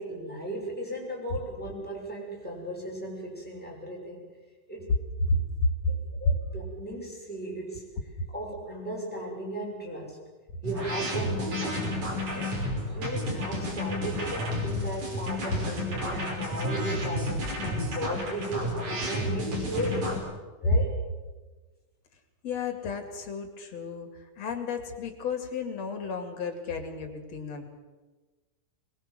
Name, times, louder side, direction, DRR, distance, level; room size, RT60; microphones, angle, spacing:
voice 1, 0.0-4.3 4.7-5.0 5.9-7.9 8.3-10.2 10.6-11.9 12.2-20.2 20.6-20.9, right 1 dB, 5° left, -3 dB, 6.4 m, -36 dB
voice 2, 5.2-5.9 6.2-6.4 8.2-8.3 22.4-27.6, left 2 dB, 55° left, 5 dB, 3.3 m, -31 dB
sound 1, 10.6-20.2, left 1 dB, 75° right, 7.2 m, -31 dB
22.5 x 21.0 x 7.7 m, 1.3 s
omnidirectional pair, 3.6 m